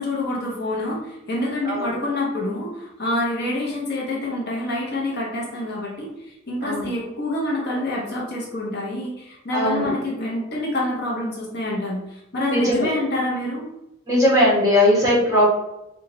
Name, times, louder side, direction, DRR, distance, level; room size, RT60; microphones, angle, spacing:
voice 1, 0.0-13.7, left 1 dB, 50° left, -3 dB, 0.8 m, -27 dB
voice 2, 1.6-2.0 6.6-6.9 9.5-9.9 12.5-12.9 14.1-15.5, left 1 dB, 15° right, -7 dB, 1.2 m, -19 dB
3.7 x 2.4 x 3.1 m, 0.90 s
head